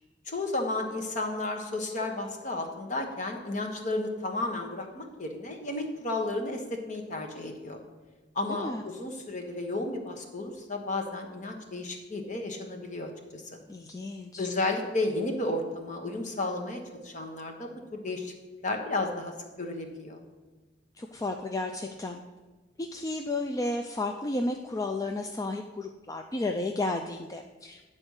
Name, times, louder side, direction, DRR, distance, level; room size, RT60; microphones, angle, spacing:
voice 1, 0.3-7.8 8.3-13.6 14.4-18.3 18.6-20.2, left 2 dB, 45° left, 3 dB, 1.2 m, -33 dB
voice 2, 8.5-8.8 13.7-14.5 21.0-22.2 22.8-27.8, left 2 dB, 20° left, 4 dB, 0.4 m, -33 dB
9.7 x 4.4 x 6.4 m, 1.3 s
head